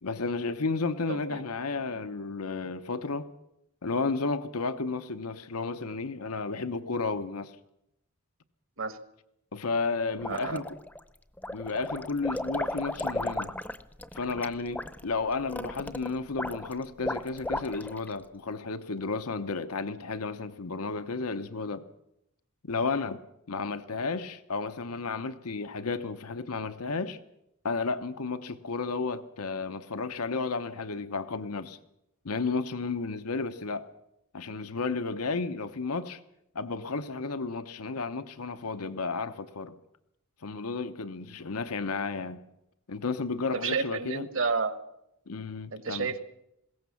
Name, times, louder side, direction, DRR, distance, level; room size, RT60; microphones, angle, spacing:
voice 1, 0.0-3.3 3.8-7.5 9.5-10.8 11.5-13.5 14.1-21.8 22.6-23.2 23.5-27.2 27.6-31.8 32.2-33.9 34.3-36.2 36.5-39.8 40.4-42.4 42.9-44.2 45.3-46.1, left 4 dB, 90° left, 0.9 m, -32 dB
voice 2, 1.1-1.4 1.9-2.0 8.8-9.0 10.2-10.6 43.5-44.7 45.7-46.2, right 4 dB, 60° right, 1.6 m, -31 dB
sound 1, 10.2-11.0 11.4-18.1, left 1 dB, 5° left, 0.7 m, -35 dB
21.0 x 17.5 x 7.1 m
head